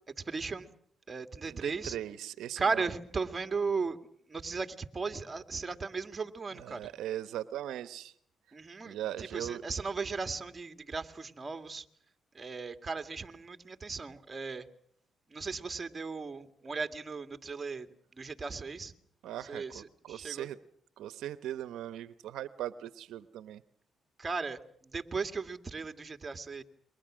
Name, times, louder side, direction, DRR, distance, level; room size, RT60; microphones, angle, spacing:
voice 1, 0.2-0.7 1.1-2.0 2.6-4.0 4.3-6.9 8.5-11.9 12.3-14.7 15.3-17.9 18.2-18.9 19.5-20.5 24.2-26.6, right 4 dB, 25° right, 8 dB, 2.1 m, -36 dB
voice 2, 1.5-2.8 6.5-8.1 8.8-9.6 19.2-20.6 21.0-23.6, right 12 dB, 80° right, 13 dB, 0.9 m, -39 dB
29.0 x 23.5 x 6.3 m, 0.65 s
cardioid pair, 90°, 0 cm